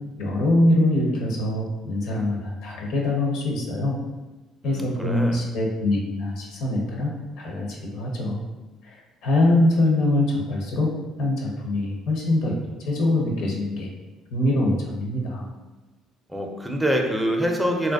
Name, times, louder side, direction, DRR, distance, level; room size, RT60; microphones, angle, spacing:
voice 1, 0.2-4.0 4.6-8.4 8.8-9.0 9.2-10.9 11.2-13.9 14.3-15.5, left 1 dB, 70° left, -1 dB, 0.5 m, -23 dB
voice 2, 4.6-5.4 16.3-17.9, equal, 10° right, 1 dB, 0.4 m, -25 dB
2.5 x 2.2 x 2.3 m, 1.1 s
hypercardioid pair, 55°, 0 cm